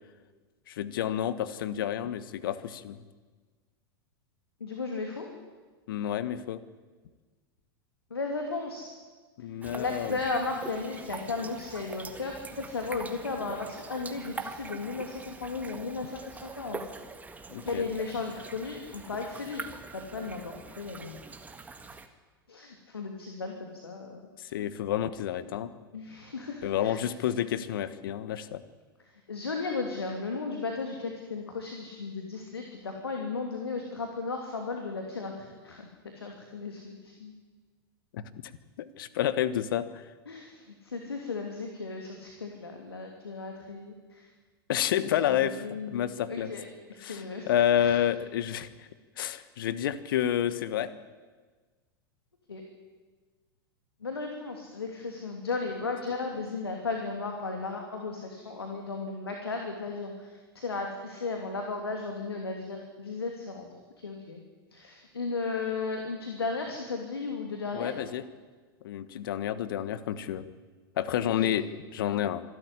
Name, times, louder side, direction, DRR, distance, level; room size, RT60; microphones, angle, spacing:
voice 1, 0.7-3.0 5.9-6.6 9.4-10.2 17.5-17.9 24.4-25.7 26.6-28.6 38.1-38.2 38.8-40.1 44.7-46.5 47.0-48.9 49.2-50.9 67.7-68.2 68.8-70.5 71.0-72.4, left 10 dB, 60° left, 14 dB, 1.4 m, -29 dB
voice 2, 4.6-5.3 8.1-8.9 9.7-16.8 17.6-19.6 19.9-21.2 21.8-21.9 22.5-24.2 25.9-27.0 29.3-35.3 35.6-35.9 36.2-37.3 40.3-44.2 45.0-45.1 45.6-46.7 47.0-47.5 47.8-47.9 52.5-52.6 54.0-63.7 64.0-64.4 64.7-68.0 71.4-71.5, left 4 dB, 80° left, 3 dB, 3.0 m, -35 dB
sound 1, 9.6-22.1, right 4 dB, 10° right, 1.7 m, -44 dB
25.5 x 13.0 x 10.0 m, 1.4 s
figure-of-eight pair, 90°, 13 cm